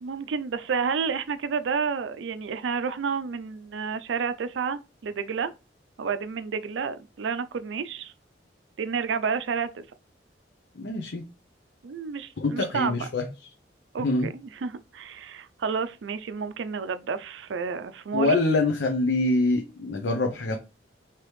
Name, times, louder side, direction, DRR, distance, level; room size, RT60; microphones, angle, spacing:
voice 1, 0.0-5.5 6.0-8.1 8.8-9.8 11.8-13.1 13.9-18.4, right 5 dB, 85° right, 0.4 m, -30 dB
voice 2, 10.8-11.3 12.4-13.3 14.0-14.3 18.1-20.5, left 2 dB, 75° left, 0.6 m, -25 dB
4.8 x 2.9 x 3.1 m
head